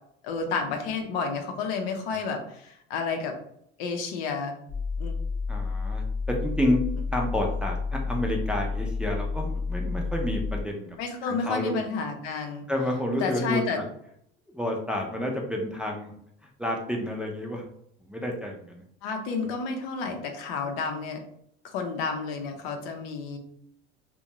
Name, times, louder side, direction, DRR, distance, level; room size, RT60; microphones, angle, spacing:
voice 1, 0.2-3.4 3.8-4.6 5.0-5.1 11.0-12.7 13.2-13.8 19.0-21.2 21.6-23.4, left 4 dB, 90° left, 4 dB, 0.7 m, -31 dB
sound 1, 4.7-10.6, left 4 dB, 50° left, 0.8 m, -30 dB
voice 2, 5.5-6.8 7.1-11.0 11.2-11.8 12.7-13.8 14.5-16.1 16.6-17.6 18.0-18.8 19.4-19.5, left 1 dB, 5° right, 0 dB, 0.4 m, -29 dB
2.5 x 2.2 x 2.9 m, 0.71 s
supercardioid pair, 115°, 29 cm